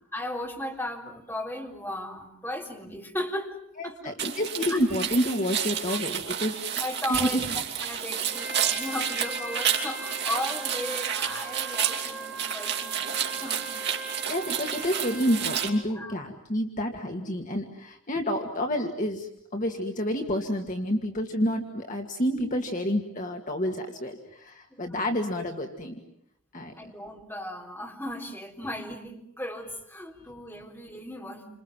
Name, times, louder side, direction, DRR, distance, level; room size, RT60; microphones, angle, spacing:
voice 1, 0.1-4.2 4.7-4.8 5.9-6.0 6.8-7.5 7.8-13.7 15.9-16.2 24.7-25.0 26.8-31.5, left 1 dB, 10° left, 0 dB, 3.8 m, -36 dB
voice 2, 3.8-6.6 7.1-7.5 14.3-26.0 26.5-26.7, equal, 40° left, 3 dB, 2.1 m, -29 dB
sound 1, 4.2-15.7, right 8 dB, 55° right, 3.0 m, -30 dB
Trumpet, 8.2-15.9, right 2 dB, 5° right, 4.0 m, -40 dB
29.0 x 27.0 x 7.4 m, 0.71 s
head